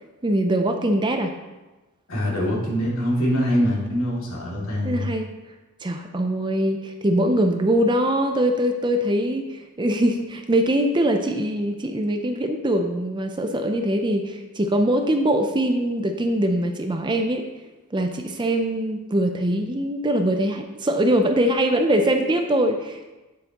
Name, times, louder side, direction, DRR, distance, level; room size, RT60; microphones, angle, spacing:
voice 1, 0.2-1.3 4.8-5.3 5.8-17.4 17.9-23.1, right 1 dB, 20° right, 5 dB, 0.5 m, -22 dB
voice 2, 2.1-5.1, equal, 65° left, -4 dB, 2.4 m, -23 dB
9.3 x 7.8 x 2.9 m, 1.1 s
head